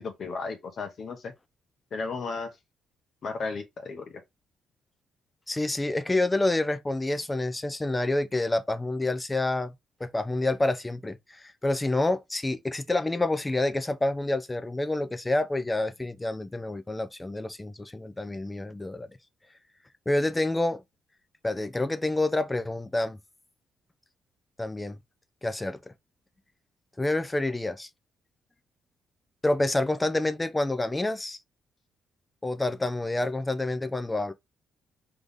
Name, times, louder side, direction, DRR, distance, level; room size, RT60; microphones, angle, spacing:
voice 1, 0.0-1.3 1.9-2.5 3.2-4.2, left 4 dB, 55° left, 1.0 m, -34 dB
voice 2, 5.5-9.7 10.0-19.1 20.1-20.8 21.4-23.2 24.6-25.0 25.4-25.9 27.0-27.9 29.4-31.4 32.4-34.3, left 2 dB, 15° left, 0.6 m, -28 dB
3.9 x 3.4 x 3.5 m
cardioid pair, 90°, 0 cm